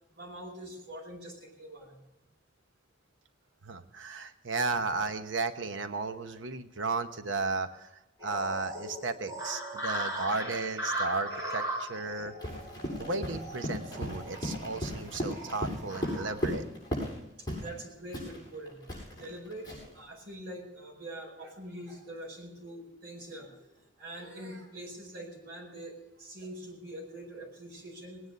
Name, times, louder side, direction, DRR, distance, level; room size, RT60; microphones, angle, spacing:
voice 1, 0.1-2.0 17.6-18.8 19.1-19.7 19.9-28.2, right 1 dB, 60° right, -2 dB, 5.0 m, -44 dB
voice 2, 3.6-12.3 13.0-16.6, right 3 dB, 85° right, 9 dB, 1.0 m, -34 dB
sound 1, 8.2-16.3, right 1 dB, 20° right, 4.0 m, -38 dB
Run, 12.4-17.2 17.5-17.7 18.1-20.0, equal, 20° left, 7.2 m, -36 dB
20.0 x 9.8 x 6.6 m, 0.94 s
head